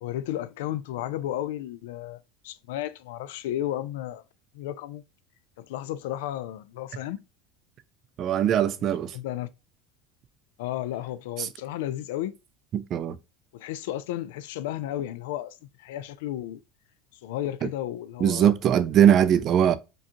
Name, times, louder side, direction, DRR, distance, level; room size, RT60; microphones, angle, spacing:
voice 1, 0.0-4.2 4.5-5.0 5.6-7.2 9.1-9.5 10.6-12.4 13.5-16.6 17.2-18.5, left 13 dB, 90° left, 0.4 m, -33 dB
voice 2, 8.2-9.1 11.4-11.5 12.7-13.2 17.6-17.7 18.2-19.8, right 9 dB, 40° right, 0.4 m, -21 dB
5.0 x 2.3 x 2.8 m
supercardioid pair, 140°, 0 cm